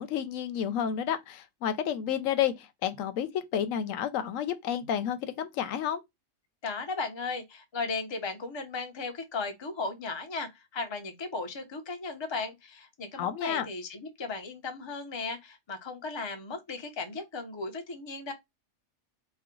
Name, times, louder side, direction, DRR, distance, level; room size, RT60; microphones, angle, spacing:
voice 1, 0.0-6.0 13.2-13.7, left 9 dB, 85° left, 1.0 m, -30 dB
voice 2, 6.6-18.3, left 4 dB, 25° left, 0.6 m, -36 dB
4.4 x 2.1 x 3.7 m
omnidirectional pair, 1.3 m